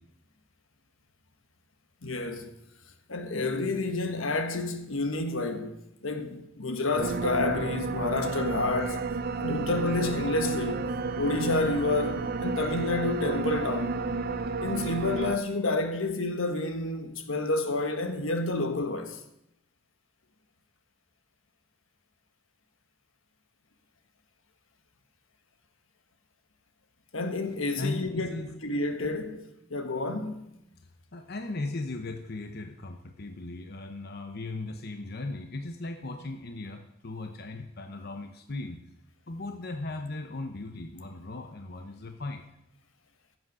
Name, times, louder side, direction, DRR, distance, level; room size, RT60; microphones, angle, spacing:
voice 1, 2.0-2.5 3.1-9.0 9.4-14.0 14.6-19.2 27.1-30.4, left 2 dB, 80° left, 1.5 m, -30 dB
sound 1, 7.0-15.4, right 4 dB, 45° right, 0.5 m, -31 dB
voice 2, 27.8-28.5 31.1-38.8 39.3-42.4, left 2 dB, 50° left, 0.8 m, -37 dB
15.0 x 7.9 x 6.3 m
head